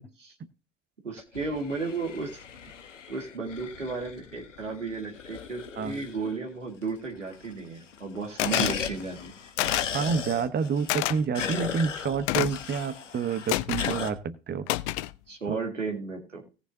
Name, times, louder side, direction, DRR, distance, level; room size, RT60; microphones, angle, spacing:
voice 1, 1.0-2.4 3.1-9.3 15.3-16.5, right 4 dB, 85° right, 2 dB, 2.0 m, -34 dB
sound 1, 1.2-6.5 6.8-6.9 7.1-7.7 7.9-14.1, left 6 dB, 80° left, 1.0 m, -36 dB
sound 2, 8.4-8.8 9.6-10.0 10.9-11.2 12.3-12.6 13.5-14.0 14.7-15.1, left 17 dB, 65° left, 0.6 m, -28 dB
voice 2, 9.9-14.7 15.5-15.6, right 6 dB, 30° right, 13 dB, 0.9 m, -28 dB
18.0 x 6.8 x 2.7 m, 0.34 s
figure-of-eight pair, 55°, 37 cm